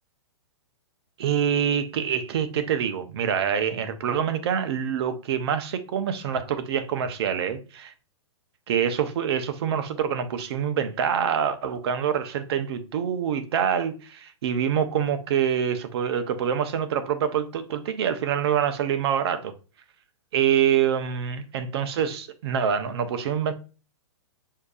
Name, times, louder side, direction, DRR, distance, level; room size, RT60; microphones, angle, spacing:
voice 1, 1.2-7.9 8.7-19.5 20.3-23.5, right 8 dB, 55° right, 0.7 m, -25 dB
6.3 x 2.8 x 2.4 m
hypercardioid pair, 135°, 16 cm